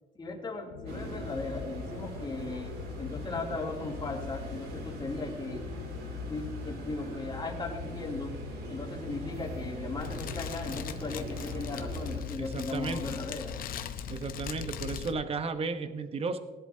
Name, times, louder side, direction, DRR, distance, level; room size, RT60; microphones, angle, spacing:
voice 1, 0.1-5.7 6.3-8.4 8.7-13.5, left 3 dB, 25° left, -1 dB, 2.8 m, -37 dB
sound 1, 0.7-15.2, left 7 dB, 85° left, 1.1 m, -43 dB
sound 2, 0.9-12.2, right 2 dB, 70° right, 2.7 m, -42 dB
Fire, 10.0-15.1, left 8 dB, 60° left, 0.8 m, -40 dB
voice 2, 12.4-13.2 14.1-16.4, right 4 dB, 35° right, 10 dB, 1.0 m, -34 dB
18.5 x 11.0 x 2.8 m, 1.4 s
cardioid pair, 110°, 17 cm